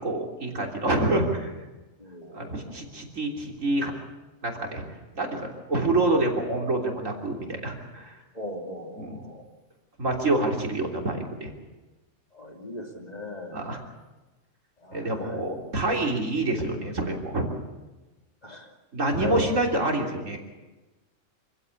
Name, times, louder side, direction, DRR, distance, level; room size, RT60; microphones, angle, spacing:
voice 1, 0.0-1.5 2.3-3.9 4.4-4.8 5.1-8.2 9.0-9.2 10.0-11.5 13.5-13.8 14.9-17.5 18.9-20.4, right 2 dB, 80° right, 1 dB, 3.7 m, -27 dB
voice 2, 2.0-2.8 8.3-9.4 12.3-13.6 14.8-15.4 18.4-18.7 19.2-19.6, left 1 dB, 30° left, 2 dB, 2.9 m, -37 dB
26.0 x 15.5 x 8.5 m, 1.1 s
omnidirectional pair, 1.3 m